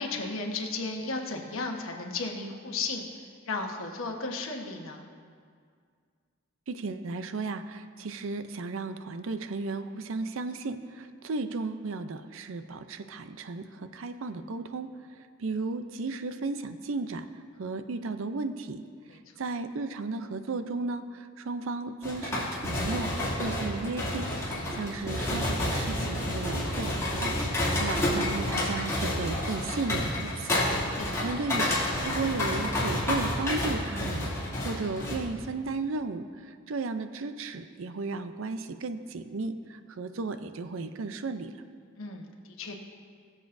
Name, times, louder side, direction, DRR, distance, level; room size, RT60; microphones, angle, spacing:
voice 1, 0.0-5.1 19.1-19.4 31.0-31.3 42.0-42.8, left 3 dB, 70° left, 1 dB, 1.2 m, -35 dB
voice 2, 6.7-14.9 15.4-17.3 17.6-18.8 19.4-23.1 23.4-26.9 27.2-30.6 30.9-31.6 32.0-34.3 34.6-41.5, right 3 dB, 65° right, 10 dB, 0.5 m, -34 dB
sound 1, 22.0-35.2, left 1 dB, 15° left, 2.5 m, -30 dB
21.0 x 7.3 x 2.6 m, 2.1 s
head